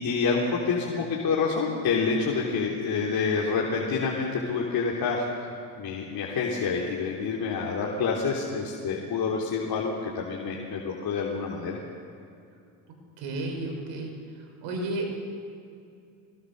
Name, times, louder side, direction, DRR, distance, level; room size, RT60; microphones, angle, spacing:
voice 1, 0.0-5.3 5.8-11.8, left 5 dB, 50° left, -3 dB, 3.6 m, -27 dB
voice 2, 13.2-14.1 14.6-15.1, right 2 dB, 70° right, 2 dB, 5.8 m, -32 dB
25.0 x 21.0 x 6.7 m, 2.5 s
hypercardioid pair, 75°, 47 cm